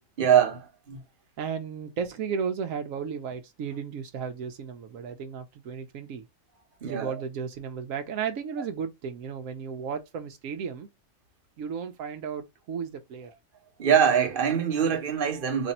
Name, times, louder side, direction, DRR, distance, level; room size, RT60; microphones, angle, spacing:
voice 1, 0.2-1.0 6.8-7.1 13.8-15.7, right 8 dB, 45° right, 1.1 m, -23 dB
voice 2, 1.4-6.2 6.8-10.9 11.6-13.3, right 6 dB, 80° right, 1.0 m, -34 dB
3.2 x 2.6 x 4.1 m
omnidirectional pair, 1.4 m